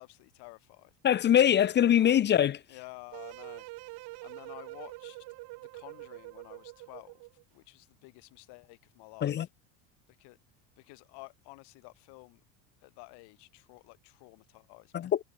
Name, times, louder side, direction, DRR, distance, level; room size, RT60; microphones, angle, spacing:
voice 1, 0.0-0.9 1.8-2.2 2.7-3.7 4.2-5.3 5.7-7.3 7.5-9.5 10.1-10.4 10.8-12.4 12.8-15.1, left 26 dB, 70° left, 7.1 m, -51 dB
voice 2, 1.0-2.6 9.2-9.5 14.9-15.2, left 10 dB, 25° left, 0.5 m, -23 dB
sound 1, 3.1-7.4, right 23 dB, 60° right, 1.7 m, -45 dB
supercardioid pair, 115°, 42 cm